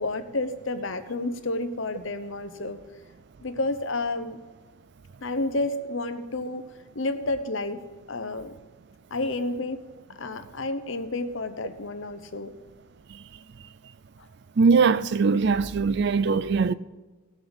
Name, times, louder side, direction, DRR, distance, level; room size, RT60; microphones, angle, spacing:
voice 1, 0.0-2.8 3.4-4.4 5.2-6.6 6.9-7.8 8.1-8.5 9.1-9.8 10.1-12.5, left 2 dB, 65° left, 0.9 m, -30 dB
voice 2, 14.6-16.7, right 5 dB, 50° right, 0.4 m, -21 dB
18.5 x 6.3 x 5.2 m
head